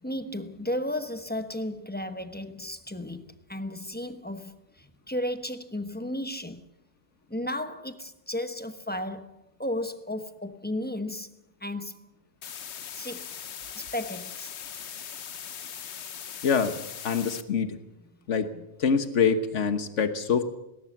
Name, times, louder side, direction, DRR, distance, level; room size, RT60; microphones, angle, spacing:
voice 1, 0.0-6.6 7.3-11.3 11.6-12.0 12.9-13.3 13.7-14.5 18.5-18.7, left 1 dB, 10° left, 1.1 m, -34 dB
sound 1, 12.4-17.4, left 8 dB, 70° left, 1.2 m, -40 dB
voice 2, 16.4-17.8 18.3-18.5 18.8-20.4, left 6 dB, 90° left, 1.5 m, -25 dB
19.0 x 18.0 x 7.4 m
omnidirectional pair, 1.2 m